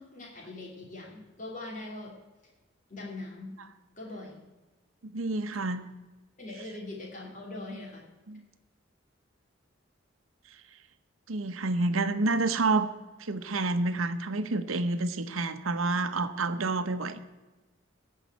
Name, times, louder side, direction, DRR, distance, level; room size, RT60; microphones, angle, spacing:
voice 1, 0.0-2.1 2.9-3.5 4.0-4.4 6.4-8.1, left 2 dB, 40° left, -3 dB, 3.0 m, -41 dB
voice 2, 5.0-5.8 8.3-8.5 11.3-12.9 13.2-17.2, right 3 dB, 90° right, 10 dB, 0.9 m, -29 dB
16.5 x 5.6 x 8.3 m, 1.2 s
head